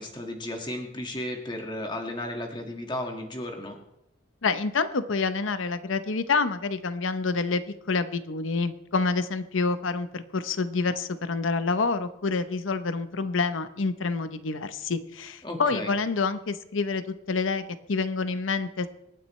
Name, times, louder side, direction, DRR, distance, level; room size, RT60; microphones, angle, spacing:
voice 1, 0.0-3.8 15.4-16.0, left 1 dB, 25° left, 3 dB, 1.8 m, -34 dB
voice 2, 4.4-7.6 7.9-17.6 17.9-18.9, left 4 dB, 85° left, 12 dB, 0.8 m, -27 dB
25.0 x 9.4 x 3.2 m, 0.85 s
head